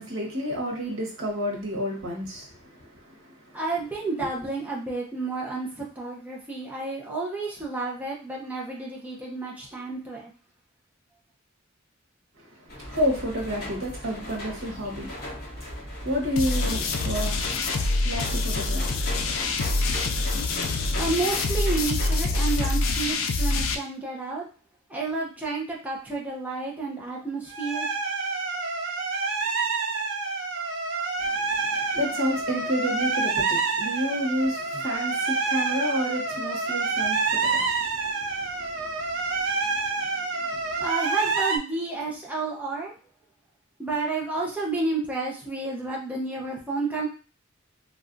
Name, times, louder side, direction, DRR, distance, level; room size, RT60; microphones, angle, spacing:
voice 1, 0.0-3.6 4.2-4.3 12.4-21.0 31.2-40.9, equal, 90° right, 1.0 m, -32 dB
voice 2, 3.5-10.3 21.0-24.5 24.9-27.9 40.8-42.9 43.8-47.1, right 3 dB, 10° right, 0.6 m, -30 dB
sound 1, 12.7-22.7, equal, 45° left, 1.6 m, -37 dB
sound 2, 16.4-23.8, left 3 dB, 75° left, 0.4 m, -26 dB
sound 3, 27.5-41.6, right 4 dB, 60° right, 0.4 m, -28 dB
3.3 x 2.3 x 2.5 m
head